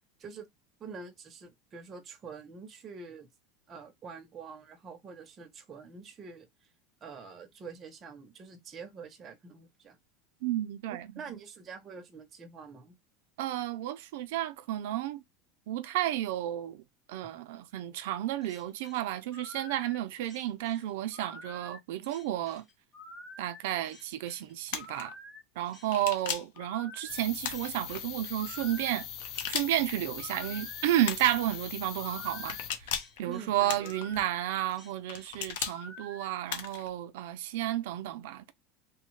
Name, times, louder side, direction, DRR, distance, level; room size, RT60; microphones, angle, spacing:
voice 1, 0.8-3.3 3.7-6.5 7.0-10.0 10.9-13.0 33.2-33.9, right 5 dB, 20° right, 0.6 m, -46 dB
voice 2, 10.4-11.1 13.4-15.2 15.7-16.8 17.1-22.6 23.4-25.1 25.6-29.1 29.5-32.6 33.2-38.5, right 13 dB, 65° right, 0.4 m, -32 dB
sound 1, 18.4-36.3, left 1 dB, 15° left, 0.8 m, -49 dB
sound 2, 24.7-25.0 25.9-26.6 27.4-28.0 29.2-29.9 31.0-31.4 32.5-33.2 33.7-34.2 35.1-35.8 36.5-36.9, left 8 dB, 75° left, 0.6 m, -36 dB
sound 3, 27.1-32.7, left 9 dB, 35° left, 0.4 m, -42 dB
3.1 x 2.1 x 3.0 m
supercardioid pair, 175°, 0 cm